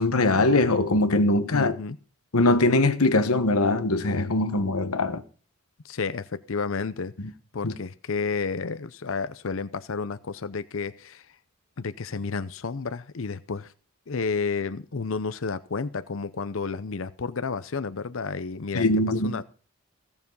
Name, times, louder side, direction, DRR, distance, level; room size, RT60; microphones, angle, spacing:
voice 1, 0.0-1.8 2.3-5.2 7.6-7.7 18.7-19.3, left 2 dB, 90° left, 1.2 m, -22 dB
voice 2, 1.5-2.0 5.8-7.1 7.5-11.2 11.8-13.7 14.1-18.9 19.2-19.4, left 4 dB, 65° left, 0.6 m, -31 dB
16.5 x 7.0 x 5.4 m
head